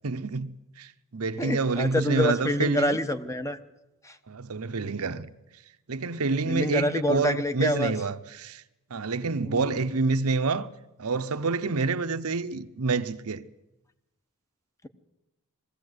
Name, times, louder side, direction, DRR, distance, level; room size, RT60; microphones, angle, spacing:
voice 1, 0.0-0.5 0.8-3.0 4.3-5.3 5.9-8.6 8.9-10.7 11.0-13.4, right 4 dB, 85° right, 0.8 m, -28 dB
voice 2, 1.4-3.6 4.0-4.1 6.4-7.9 9.4-9.7, left 1 dB, 15° left, 0.9 m, -27 dB
21.0 x 15.5 x 8.0 m
head